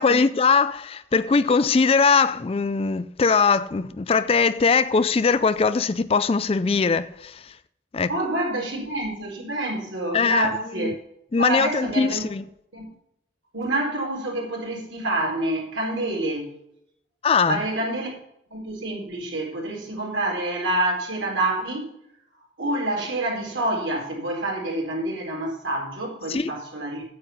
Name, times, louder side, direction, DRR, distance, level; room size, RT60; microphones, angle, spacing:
voice 1, 0.0-7.4 7.9-8.1 10.1-10.5 10.8-10.9 11.3-12.4 17.2-17.6 26.3-26.5, left 5 dB, 30° left, 0.3 m, -21 dB
voice 2, 8.1-11.0 11.4-12.3 12.7-12.9 13.5-16.5 17.5-18.1 18.5-21.9 22.6-27.0, right 1 dB, 80° right, 4.2 m, -27 dB
9.4 x 8.1 x 5.7 m
head